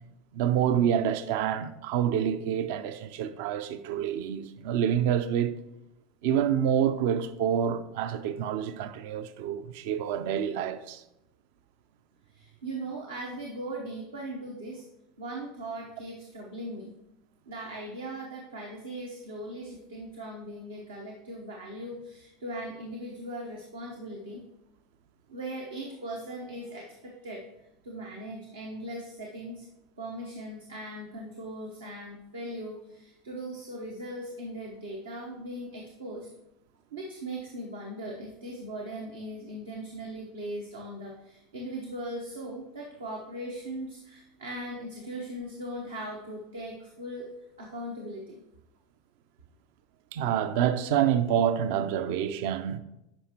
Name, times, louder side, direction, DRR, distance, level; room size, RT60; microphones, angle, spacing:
voice 1, 0.3-5.6 6.2-11.0 50.1-52.8, right 9 dB, 60° right, 0.4 m, -27 dB
voice 2, 12.3-14.8 15.2-16.9 17.5-24.4 25.3-27.4 27.8-29.7 30.0-36.3 36.9-47.3 47.6-48.4, right 1 dB, 80° right, 0.9 m, -39 dB
9.9 x 5.2 x 3.0 m
figure-of-eight pair, 80°, 0 cm